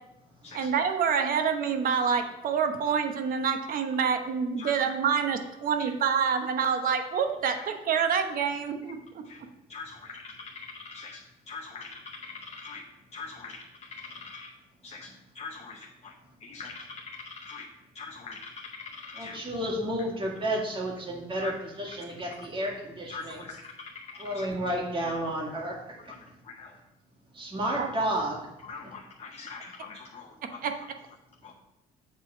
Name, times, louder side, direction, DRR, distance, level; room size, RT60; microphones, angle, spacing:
voice 1, 0.5-9.0 27.8-27.9 30.6-30.7, right 6 dB, 55° right, 6 dB, 1.0 m, -27 dB
voice 2, 9.7-12.8 13.1-14.5 14.8-17.7 17.9-19.4 21.4-21.5 21.9-22.0 22.2-22.4 23.1-24.5 26.0-26.8 28.6-30.7 31.4-31.5, left 4 dB, 40° left, 1 dB, 0.8 m, -43 dB
voice 3, 19.1-23.4 24.2-25.8 27.3-28.5 28.8-28.9, right 1 dB, 30° right, -2 dB, 2.0 m, -31 dB
7.5 x 4.0 x 6.1 m, 0.93 s
cardioid pair, 110°, 17 cm